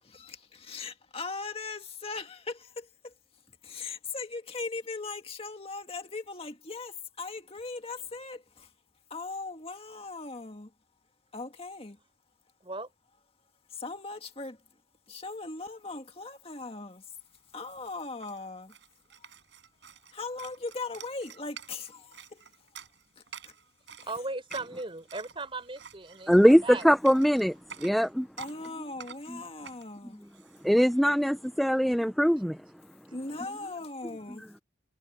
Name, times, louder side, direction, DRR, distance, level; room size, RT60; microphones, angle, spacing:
voice 1, 0.1-3.1 3.5-8.7 9.1-10.7 11.3-12.0 13.7-14.6 15.1-17.1 17.5-18.7 19.2-19.3 20.1-22.7 23.2-23.5 28.4-30.2 33.1-34.5, left 3 dB, 30° left, 2.0 m, -39 dB
sound 1, 17.3-17.4 17.6-31.5, right 7 dB, 75° right, 5.3 m, -50 dB
voice 2, 24.0-26.9, right 3 dB, 30° right, 4.7 m, -37 dB
voice 3, 26.3-28.3 29.3-29.4 30.6-32.6, equal, ahead, 0.5 m, -22 dB
head